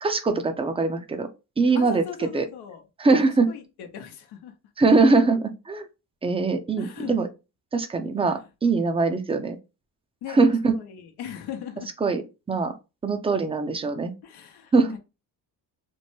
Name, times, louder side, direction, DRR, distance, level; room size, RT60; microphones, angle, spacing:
voice 1, 0.0-1.3 1.6-2.0 2.3-2.5 3.0-3.5 4.8-5.9 6.2-7.3 7.7-9.6 10.3-10.8 12.0-12.2 12.5-12.7 13.0-14.1 14.7-15.0, right 3 dB, 15° right, 0.5 m, -22 dB
voice 2, 1.7-2.8 3.5-4.5 6.8-7.2 8.3-8.4 10.2-10.4 10.7-11.9 14.2-15.0, left 8 dB, 80° left, 0.8 m, -38 dB
4.4 x 2.1 x 3.0 m
cardioid pair, 95°, 39 cm